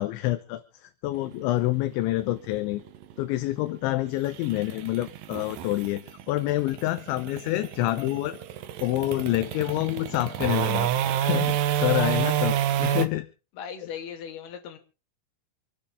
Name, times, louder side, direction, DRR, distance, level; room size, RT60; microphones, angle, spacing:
voice 1, 0.0-2.8 3.2-8.4 8.8-10.9 11.2-11.5 11.8-13.3 13.8-13.9, left 17 dB, 80° left, 11 dB, 3.0 m, -27 dB
sound 1, 1.1-13.1, right 11 dB, 80° right, 2.0 m, -29 dB
voice 2, 13.5-14.8, left 8 dB, 60° left, 6 dB, 3.9 m, -38 dB
28.0 x 9.4 x 3.6 m, 0.34 s
omnidirectional pair, 5.5 m